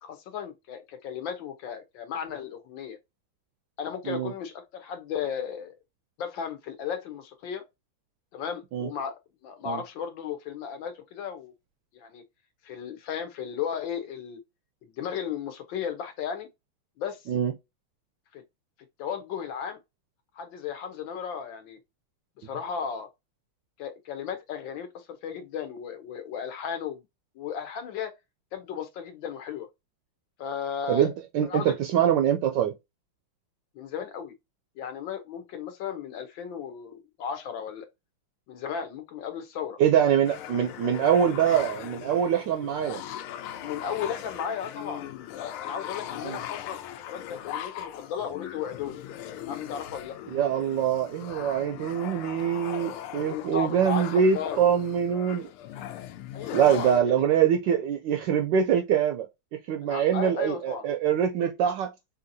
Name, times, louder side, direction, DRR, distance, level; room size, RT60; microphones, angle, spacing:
voice 1, 0.0-3.0 3.8-5.8 6.2-7.6 8.3-9.1 9.4-11.5 11.9-12.2 12.6-14.4 14.8-16.5 17.0-17.2 18.3-18.4 19.0-19.8 20.4-21.8 22.4-23.1 23.8-27.0 27.3-28.1 28.5-29.7 30.4-31.1 31.5-31.8 33.7-34.3 34.8-37.9 38.5-39.8 43.6-45.1 45.4-49.0 49.5-50.2 53.1-54.6 56.3-57.3 59.8-60.9, left 7 dB, 70° left, 1.4 m, -35 dB
voice 2, 30.9-32.7 39.8-43.0 46.2-46.4 50.3-55.5 56.5-61.9, right 8 dB, 75° right, 1.0 m, -24 dB
sound 1, 40.2-57.0, left 11 dB, 85° left, 1.5 m, -39 dB
5.6 x 2.7 x 2.6 m
omnidirectional pair, 2.4 m